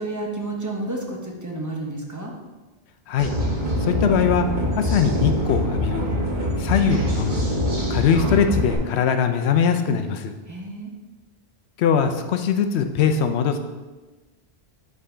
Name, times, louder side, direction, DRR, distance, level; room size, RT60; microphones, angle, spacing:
voice 1, 0.0-2.3 10.5-10.9, right 2 dB, 20° right, 0 dB, 0.8 m, -30 dB
sound 1, 3.2-8.8, equal, 45° right, 1.3 m, -24 dB
voice 2, 3.8-4.5 4.8-6.0 6.6-7.4 7.9-10.3 11.8-13.6, left 7 dB, 80° left, 7 dB, 0.8 m, -21 dB
5.5 x 3.8 x 4.9 m, 1.2 s
omnidirectional pair, 1.1 m